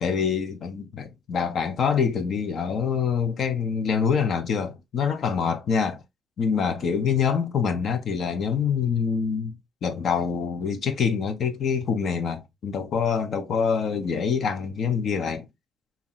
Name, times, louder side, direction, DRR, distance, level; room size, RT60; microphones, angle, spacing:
voice 1, 0.0-6.0 6.4-9.5 9.8-15.5, left 6 dB, 60° left, 0.8 m, -25 dB
3.0 x 2.8 x 3.9 m
cardioid pair, 90°, 0 cm